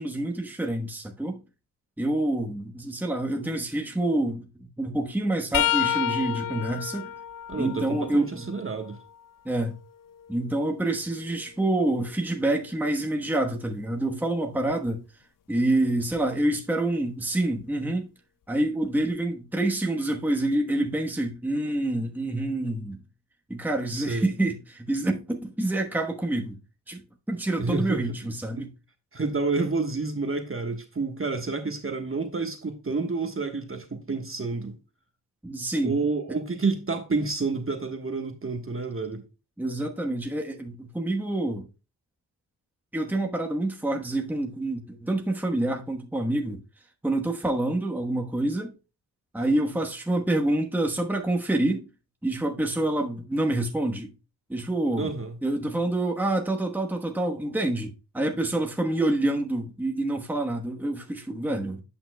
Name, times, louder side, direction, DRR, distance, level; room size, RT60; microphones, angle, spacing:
voice 1, 0.0-1.4 2.0-7.1 7.6-8.5 9.4-9.8 10.3-15.0 15.5-18.1 18.5-23.0 23.5-26.6 26.9-27.0 27.3-28.7 35.4-35.9 39.6-41.6 42.9-46.6 47.0-48.7 49.3-51.9 52.2-54.1 54.5-55.1 55.4-61.8, right 1 dB, 5° right, 1.1 m, -27 dB
sound 1, 5.5-9.3 9.8-11.8 14.7-14.9 16.1-16.3 17.6-17.7, left 11 dB, 55° left, 0.5 m, -31 dB
voice 2, 7.5-9.0 23.9-24.3 27.6-28.2 28.6-28.7 29.1-34.7 35.8-39.2 54.9-55.3, right 3 dB, 30° right, 1.2 m, -29 dB
11.0 x 5.8 x 2.2 m
cardioid pair, 55°, 41 cm